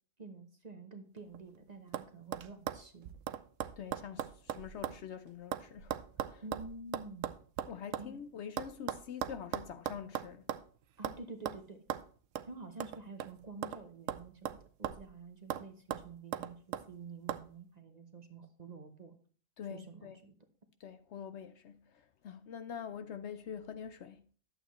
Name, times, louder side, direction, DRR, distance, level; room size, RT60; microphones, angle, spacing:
voice 1, 0.2-3.1 6.4-7.3 8.0-8.2 11.0-11.8 12.5-19.2 19.7-20.3, right 3 dB, 35° right, 1.0 m, -49 dB
sound 1, 1.2-1.6 1.9-2.1 2.3-5.0 5.3-8.1 8.6-10.7 11.0-11.2 11.5-11.6 11.9-12.0 12.4-12.5 12.8-13.8 14.1-15.1 15.5-15.6 15.9-16.9 17.3-17.4, right 10 dB, 75° right, 0.9 m, -38 dB
voice 2, 3.8-6.0 6.3-6.4 7.7-10.4 19.6-20.2 20.8-21.8 22.2-24.2, left 8 dB, 65° left, 0.8 m, -45 dB
11.5 x 7.9 x 3.0 m
omnidirectional pair, 1.4 m